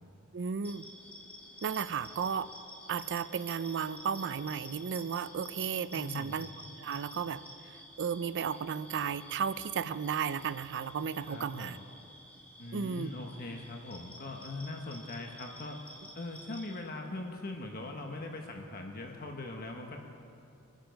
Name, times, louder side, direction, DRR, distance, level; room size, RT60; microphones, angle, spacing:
voice 1, 0.3-0.8 1.6-2.5 2.9-6.5 6.8-7.4 7.7-11.8 12.7-13.1, right 7 dB, 55° right, 14 dB, 0.5 m, -34 dB
sound 1, 0.6-16.8, left 1 dB, 5° left, 2.3 m, -52 dB
voice 2, 5.9-6.3 11.2-11.8 12.6-15.8 16.1-20.0, left 2 dB, 45° left, 2 dB, 1.1 m, -41 dB
25.0 x 9.1 x 5.2 m, 2.6 s
head